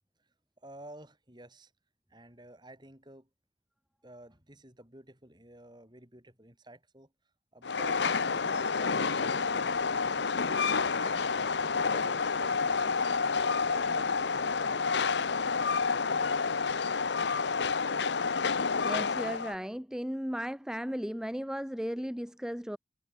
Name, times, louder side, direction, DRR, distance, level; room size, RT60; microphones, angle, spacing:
voice 1, 0.6-1.7 2.1-3.3 4.0-7.1 7.5-9.8 10.1-13.3 13.7-15.0, right 1 dB, 25° right, 5.6 m, -52 dB
Train, 7.6-19.6, left 5 dB, 70° left, 0.8 m, -29 dB
sound 1, 9.4-15.5, right 1 dB, 65° right, 5.6 m, -58 dB
voice 2, 18.8-22.8, equal, 5° right, 0.8 m, -35 dB
head